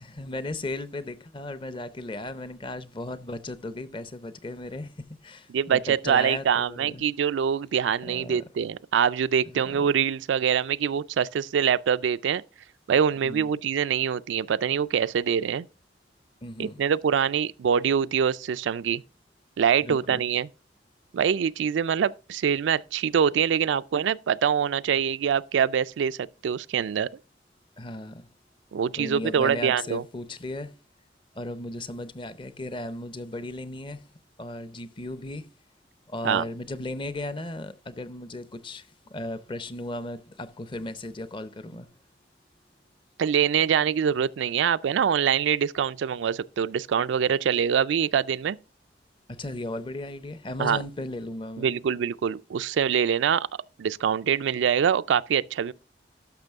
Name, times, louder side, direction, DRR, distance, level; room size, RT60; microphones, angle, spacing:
voice 1, 0.0-7.0 8.0-8.4 9.4-9.9 13.2-13.5 16.4-16.8 19.8-20.2 27.8-28.3 28.9-30.7 31.3-34.0 34.4-35.5 36.1-41.9 49.3-51.7, left 1 dB, 25° left, 0.6 m, -36 dB
voice 2, 5.5-12.4 12.9-15.6 16.6-19.0 19.6-20.5 21.1-27.1 28.7-30.0 36.2-36.4 43.2-48.6 50.6-50.8 51.6-53.5 53.8-55.7, right 8 dB, 90° right, 0.3 m, -24 dB
12.0 x 6.1 x 3.5 m
head